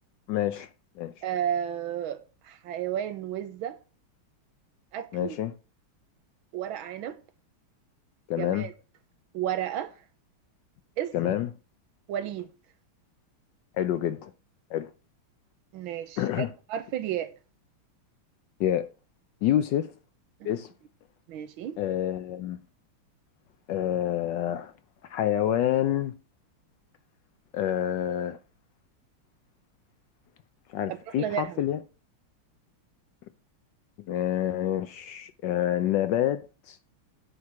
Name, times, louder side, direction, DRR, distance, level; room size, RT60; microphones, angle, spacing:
voice 1, 0.3-0.7 1.0-1.1 5.1-5.5 8.3-8.7 11.1-11.5 13.8-14.3 14.7-14.9 16.2-16.5 18.6-18.9 19.4-19.9 20.4-20.7 21.8-22.6 23.7-24.7 25.1-26.2 27.5-28.4 30.7-31.8 34.1-36.4 36.7-36.8, left 11 dB, 75° left, 1.1 m, -27 dB
voice 2, 1.2-3.8 4.9-5.4 6.5-7.2 8.4-8.7 9.3-9.9 11.0-11.4 12.1-12.5 15.7-17.3 21.3-21.8 30.9-31.6, right 10 dB, 75° right, 1.6 m, -32 dB
9.6 x 4.4 x 4.8 m
omnidirectional pair, 2.3 m